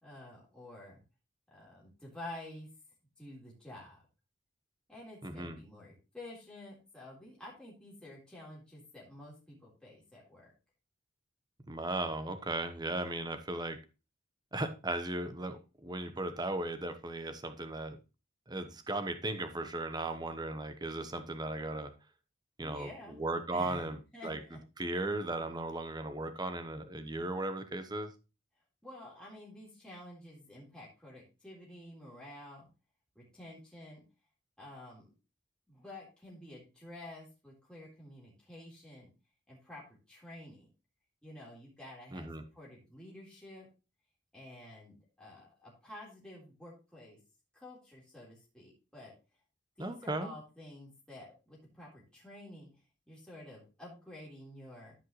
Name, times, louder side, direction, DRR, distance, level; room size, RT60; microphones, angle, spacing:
voice 1, 0.0-1.0 1.5-2.7 3.2-4.0 4.9-10.5 22.6-23.2 23.5-23.9 24.1-24.6 28.8-32.7 33.2-34.0 34.6-35.1 35.7-39.1 39.5-39.8 40.1-40.7 41.2-43.7 44.3-47.2 47.5-49.1 49.8-52.7 53.1-54.9, left 1 dB, 5° left, -6 dB, 3.5 m, -50 dB
voice 2, 5.2-5.6 11.7-13.8 14.5-18.0 18.5-21.9 22.6-22.9 23.2-24.0 24.2-24.4 24.8-28.1 42.1-42.4 49.8-50.3, right 2 dB, 20° right, 9 dB, 1.0 m, -36 dB
13.5 x 5.6 x 3.2 m, 0.30 s
head